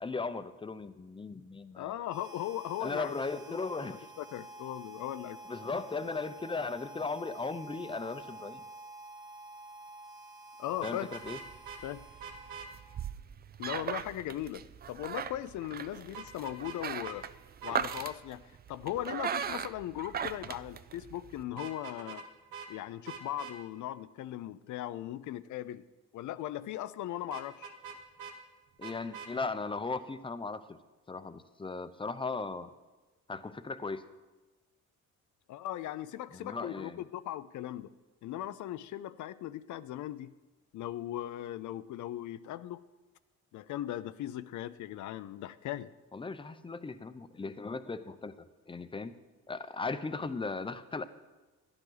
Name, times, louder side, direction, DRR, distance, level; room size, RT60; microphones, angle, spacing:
voice 1, 0.0-2.1 2.8-4.1 5.5-8.6 10.8-11.4 28.8-30.8 31.1-32.7 33.3-34.0 36.3-37.0 46.1-49.1 49.5-51.0, left 4 dB, 15° left, 12 dB, 0.6 m, -37 dB
voice 2, 1.8-3.1 3.5-3.6 4.2-5.4 10.6-11.1 11.8-12.0 13.6-17.2 17.6-18.4 18.7-22.2 22.7-25.8 26.1-27.7 35.5-37.9 38.2-40.3 40.7-42.8 43.5-45.9, left 13 dB, 75° left, 15 dB, 0.6 m, -38 dB
Harmonica, 2.1-13.1, right 2 dB, 15° right, 1.8 m, -49 dB
Vehicle horn car horn honking, 10.7-11.8 12.2-12.7 16.1-16.8 17.0-17.2 17.6-18.1 21.5-22.3 22.5-22.7 23.1-23.5 27.3-28.4 28.8-29.3, right 6 dB, 75° right, 1.4 m, -44 dB
sound 1, 11.1-21.4, right 8 dB, 30° right, 0.4 m, -39 dB
12.0 x 10.5 x 3.9 m, 1.2 s
cardioid pair, 90°, 30 cm